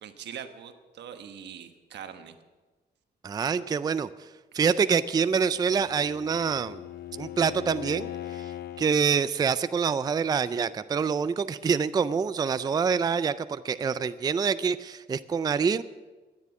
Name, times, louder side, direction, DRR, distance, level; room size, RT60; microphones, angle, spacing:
voice 1, 0.0-2.3, right 8 dB, 85° right, 8 dB, 1.2 m, -42 dB
voice 2, 3.2-4.1 4.5-6.8 7.2-8.5 8.8-15.8, right 6 dB, 20° right, 14 dB, 0.4 m, -26 dB
Bowed string instrument, 5.3-9.0, left 12 dB, 65° left, 0.6 m, -40 dB
13.0 x 9.8 x 7.1 m, 1.3 s
cardioid pair, 115°, 18 cm